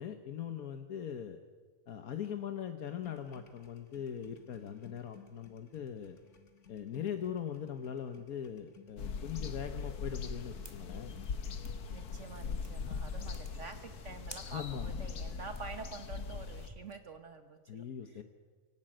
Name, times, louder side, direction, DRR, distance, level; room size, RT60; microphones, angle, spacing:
voice 1, 0.0-1.4 1.9-6.2 6.7-11.2 14.4-14.9 17.7-18.2, left 8 dB, 70° left, 7 dB, 1.4 m, -41 dB
sound 1, 3.0-12.7, left 7 dB, 50° left, 1.9 m, -59 dB
sound 2, 9.0-16.7, left 5 dB, 85° left, 1.8 m, -40 dB
sound 3, 10.6-16.9, right 1 dB, 15° right, 1.5 m, -55 dB
voice 2, 11.9-17.8, right 4 dB, 55° right, 8 dB, 1.4 m, -47 dB
24.0 x 17.5 x 7.8 m, 1.5 s
omnidirectional pair, 1.6 m